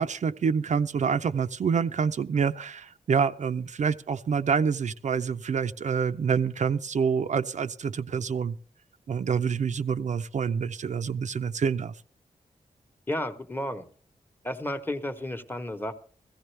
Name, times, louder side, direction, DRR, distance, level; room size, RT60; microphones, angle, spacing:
voice 1, 0.0-8.5 9.1-11.9, right 6 dB, 60° right, 10 dB, 0.5 m, -27 dB
voice 2, 13.1-13.8 14.4-15.9, left 1 dB, 15° left, 8 dB, 1.0 m, -32 dB
15.5 x 15.5 x 3.3 m, 0.43 s
wide cardioid pair, 145°, 14 cm